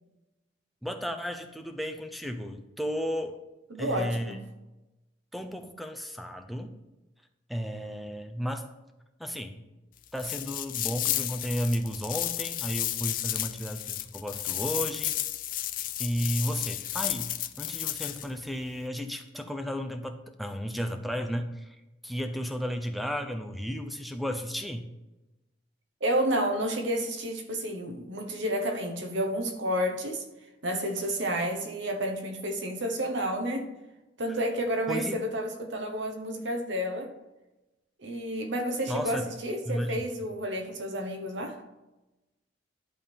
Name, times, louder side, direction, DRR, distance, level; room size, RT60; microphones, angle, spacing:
voice 1, 0.8-3.4 3.8-4.4 5.3-6.8 7.5-8.6 9.2-9.6 10.1-15.2 16.0-21.8 22.0-24.9 34.3-34.4 34.9-35.2 38.9-39.3 39.7-40.0, equal, ahead, 7 dB, 0.6 m, -33 dB
voice 2, 3.7-4.4 26.0-30.2 30.6-33.7 34.2-37.1 38.0-41.6, equal, 75° right, 5 dB, 1.2 m, -30 dB
sound 1, 10.1-18.3, left 13 dB, 45° left, 0.4 m, -32 dB
11.0 x 3.7 x 6.9 m, 1.0 s
head